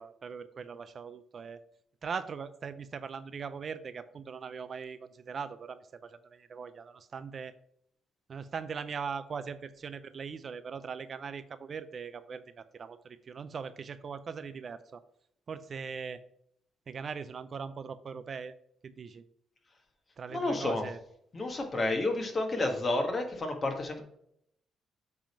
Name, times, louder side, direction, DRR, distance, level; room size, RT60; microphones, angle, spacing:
voice 1, 0.0-1.6 2.0-7.5 8.3-15.0 15.5-16.2 16.9-18.5 18.8-19.2 20.2-21.0, right 6 dB, 45° right, 12 dB, 0.6 m, -40 dB
voice 2, 20.3-20.8 21.3-24.0, left 2 dB, 35° left, 3 dB, 1.6 m, -30 dB
7.5 x 3.6 x 5.9 m, 0.71 s
cardioid pair, 90°, 0 cm